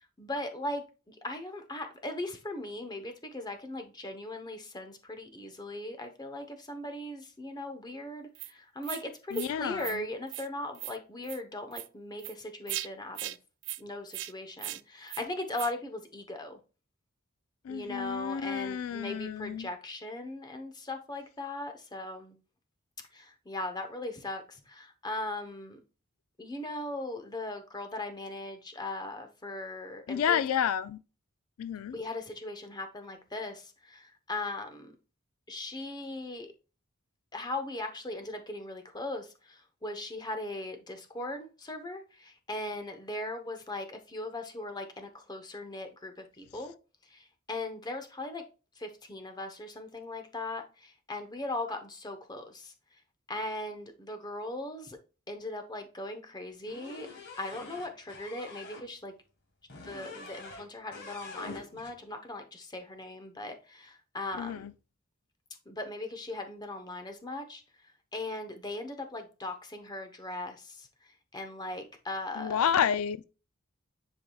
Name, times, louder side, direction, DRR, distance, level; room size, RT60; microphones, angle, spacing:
voice 1, 0.2-0.8 1.2-13.4 13.8-16.6 17.7-22.3 23.1-24.4 24.7-25.8 26.4-30.4 31.9-33.6 33.9-34.9 35.5-36.5 37.3-39.3 39.8-46.7 47.5-48.4 48.8-50.6 51.1-52.7 53.3-55.0 55.3-57.1 57.4-59.1 59.8-64.7 65.7-67.6 68.1-70.6 71.3-72.7, left 2 dB, 20° left, 0.9 m, -38 dB
sound 1, 8.3-8.5 8.8-9.0 9.3-9.5 9.8-10.0 10.3-10.5 10.7-11.0 11.2-11.4 11.7-11.9 12.2-12.3 12.7-12.9 13.1-13.4 13.6-13.8 14.1-14.3 14.6-14.8 15.1-15.2 15.5-15.7, right 16 dB, 60° right, 0.4 m, -38 dB
voice 2, 9.3-10.0 17.6-19.7 30.1-31.0 31.6-32.0 64.3-64.7 72.4-73.2, left 8 dB, 80° left, 0.3 m, -30 dB
sound 2, 56.7-58.8 59.7-60.7 60.9-61.9, left 3 dB, 55° left, 1.7 m, -45 dB
10.5 x 4.8 x 2.3 m
head